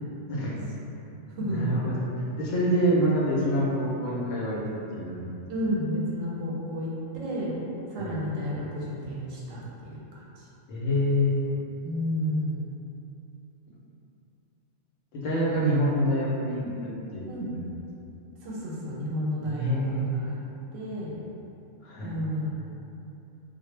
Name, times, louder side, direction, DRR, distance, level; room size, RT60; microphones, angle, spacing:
voice 1, 0.3-0.6 1.5-1.9 2.4-4.6 4.9-5.3 8.0-8.2 10.7-11.5 15.1-17.2 17.6-17.7 19.4-20.0 21.8-22.1, equal, 75° left, -6 dB, 0.9 m, -26 dB
voice 2, 1.4-1.7 5.5-7.6 7.9-10.5 11.8-12.7 17.3-17.5 18.4-20.4 20.7-21.2 22.0-22.5, equal, 90° right, -5 dB, 1.0 m, -31 dB
2.3 x 2.0 x 3.1 m, 2.8 s
omnidirectional pair, 1.3 m